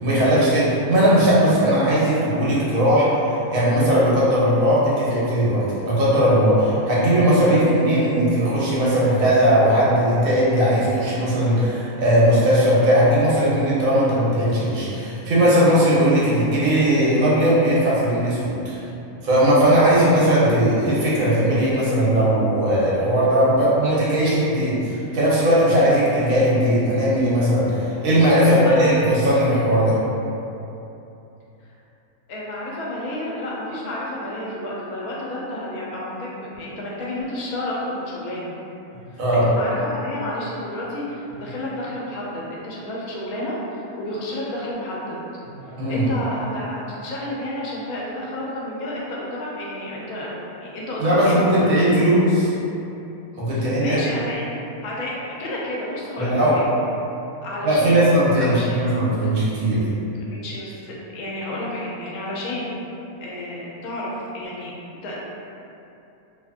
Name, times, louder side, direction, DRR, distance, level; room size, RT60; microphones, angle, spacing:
voice 1, 0.0-18.8 19.2-30.0 39.2-39.5 45.6-46.0 51.0-52.5 53.4-54.0 56.2-56.6 57.6-59.8, equal, 70° right, -8 dB, 1.1 m, -18 dB
voice 2, 28.4-29.0 32.3-38.6 39.1-45.2 45.9-50.3 50.6-52.0 53.5-54.4 54.8-56.6 57.4-58.1 58.4-58.8 60.2-62.8 63.2-65.2, left 1 dB, 90° left, -5 dB, 1.1 m, -31 dB
2.8 x 2.6 x 2.4 m, 2.9 s
omnidirectional pair, 1.5 m